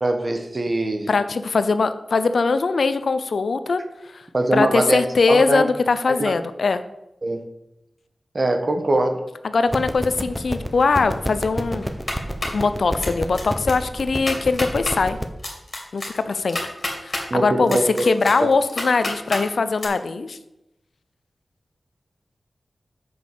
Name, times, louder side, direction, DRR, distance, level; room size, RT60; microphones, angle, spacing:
voice 1, 0.0-1.1 4.3-5.0 5.3-5.7 6.2-6.3 7.2-7.4 8.3-9.2 17.3-18.0 18.4-18.5, right 2 dB, 50° right, 6 dB, 1.3 m, -22 dB
voice 2, 1.1-3.8 4.1-4.2 4.5-6.8 9.4-11.9 12.5-15.2 15.9-16.6 17.0-20.4, left 4 dB, 75° left, 11 dB, 0.6 m, -21 dB
sound 1, 9.7-15.2, equal, 5° right, 1.0 m, -30 dB
sound 2, 11.8-12.6 13.0-13.4 13.7-13.8 14.1-15.0 15.4-17.2 17.7-19.4 19.8-19.9, left 1 dB, 50° left, 2.7 m, -29 dB
7.0 x 5.2 x 6.7 m, 0.91 s
cardioid pair, 40°, 0 cm